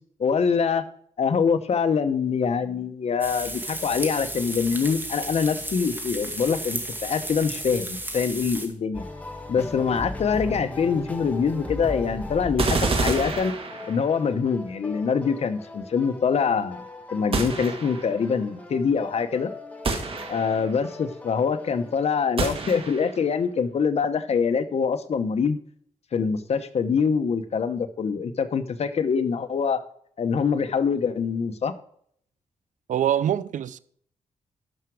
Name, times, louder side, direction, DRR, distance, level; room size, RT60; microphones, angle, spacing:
voice 1, 0.2-0.8 1.2-9.0 9.5-13.5 13.9-16.8 17.1-19.5 20.3-25.6 26.1-29.8 30.2-31.7, left 6 dB, 55° left, 1.0 m, -24 dB
sound 1, 3.2-8.7, right 1 dB, 15° right, 2.1 m, -33 dB
sound 2, 8.9-22.0, left 2 dB, 10° left, 1.7 m, -38 dB
sound 3, 12.6-14.2 17.3-18.2 19.9-20.8 22.4-23.2, right 4 dB, 45° right, 1.7 m, -28 dB
voice 2, 32.9-33.8, right 10 dB, 80° right, 0.5 m, -24 dB
12.0 x 6.0 x 4.7 m
wide cardioid pair, 110°, 13 cm